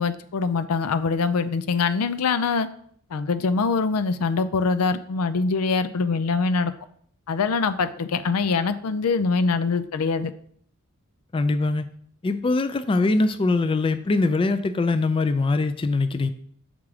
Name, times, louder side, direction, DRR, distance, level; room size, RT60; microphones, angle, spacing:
voice 1, 0.0-2.7 3.1-6.7 7.3-10.3, left 4 dB, 90° left, 12 dB, 0.5 m, -23 dB
voice 2, 11.3-11.9 12.2-16.3, left 3 dB, 25° left, 10 dB, 0.3 m, -22 dB
7.1 x 3.7 x 4.8 m, 0.63 s
head